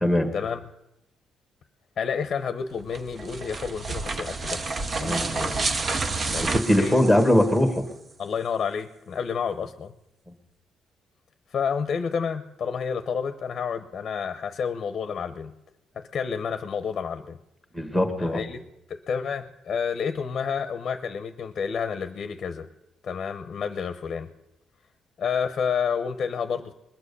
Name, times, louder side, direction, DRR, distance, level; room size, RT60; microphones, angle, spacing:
voice 1, 0.3-0.6 2.0-4.7 5.0-5.5 6.3-7.0 8.2-9.9 11.5-15.5 15.9-17.4 18.2-22.7 23.0-24.3 25.2-26.7, left 6 dB, 40° left, 10 dB, 0.8 m, -30 dB
sound 1, 2.8-7.8, right 3 dB, 30° right, 0.8 m, -30 dB
voice 2, 5.0-5.5 6.4-7.8 17.7-18.4, left 1 dB, 5° right, 7 dB, 1.7 m, -21 dB
21.0 x 7.5 x 6.8 m, 0.88 s
cardioid pair, 140°, 0 cm